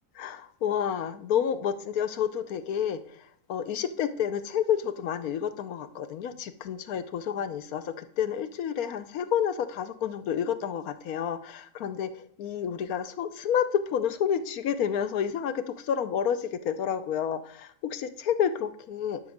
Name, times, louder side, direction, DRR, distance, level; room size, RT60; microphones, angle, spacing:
voice 1, 0.2-19.2, left 8 dB, 85° left, 11 dB, 1.2 m, -30 dB
11.5 x 4.0 x 6.5 m, 0.62 s
omnidirectional pair, 1.5 m